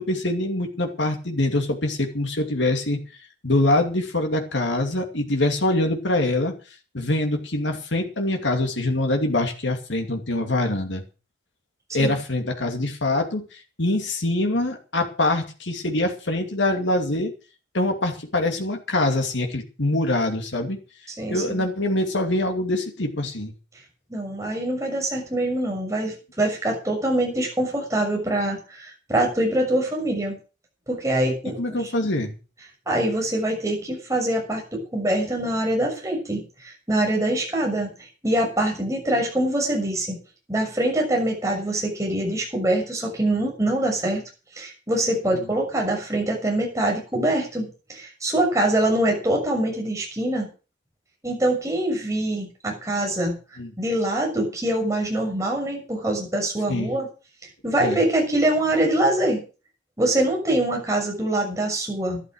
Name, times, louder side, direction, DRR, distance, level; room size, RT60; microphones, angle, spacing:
voice 1, 0.0-3.0 3.4-6.5 6.9-11.0 11.9-17.3 17.7-20.8 21.3-23.5 31.6-32.4 53.6-53.7 56.7-56.9 57.8-58.0, left 2 dB, 85° left, 4 dB, 2.5 m, -24 dB
voice 2, 21.2-21.6 24.1-30.4 30.9-31.8 32.9-37.9 38.2-40.2 40.5-44.2 44.5-50.5 51.2-53.4 53.8-57.1 57.6-59.4 60.0-62.2, right 1 dB, 15° right, 0 dB, 6.5 m, -24 dB
12.5 x 11.5 x 6.4 m, 0.35 s
head